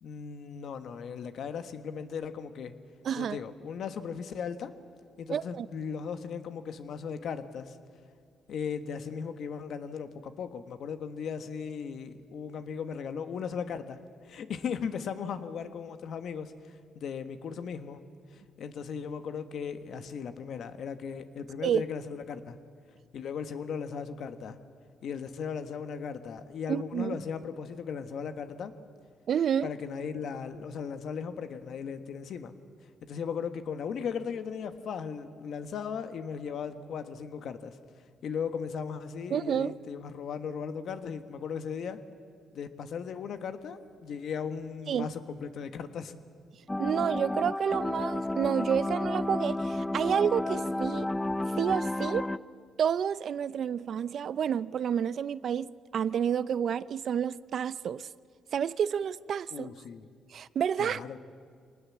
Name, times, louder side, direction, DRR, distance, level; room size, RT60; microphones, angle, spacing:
voice 1, 0.0-2.7 3.1-4.7 5.2-7.8 8.5-18.0 18.3-22.6 23.1-24.6 25.0-28.7 29.6-32.5 32.8-42.0 42.5-46.1 59.5-60.1 60.8-61.2, left 6 dB, 65° left, 1.4 m, -37 dB
voice 2, 3.0-3.4 5.3-5.7 21.6-21.8 26.7-27.2 29.3-29.7 39.3-39.7 44.9-45.1 46.8-51.1 51.6-52.3 52.8-58.1 58.5-59.7 60.3-61.0, right 8 dB, 60° right, 0.5 m, -29 dB
sound 1, 46.7-52.4, left 1 dB, 15° left, 0.5 m, -31 dB
24.5 x 19.5 x 7.4 m
cardioid pair, 90°, 0 cm